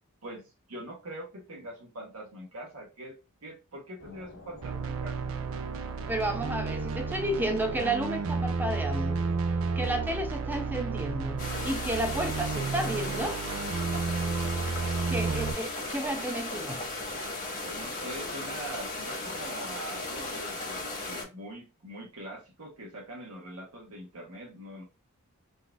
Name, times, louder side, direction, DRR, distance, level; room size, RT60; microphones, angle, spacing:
voice 1, 0.2-3.1 3.4-5.2 17.6-24.8, right 1 dB, 85° right, 1.0 m, -43 dB
sound 1, 4.0-12.0, left 2 dB, 75° left, 1.1 m, -48 dB
sound 2, 4.6-15.5, right 4 dB, 65° right, 0.4 m, -32 dB
voice 2, 6.1-9.2 9.8-11.4 11.6-13.4 15.1-16.8, right 1 dB, 10° right, 0.5 m, -32 dB
sound 3, 11.4-21.2, left 2 dB, 40° left, 1.3 m, -36 dB
3.9 x 2.4 x 2.3 m
head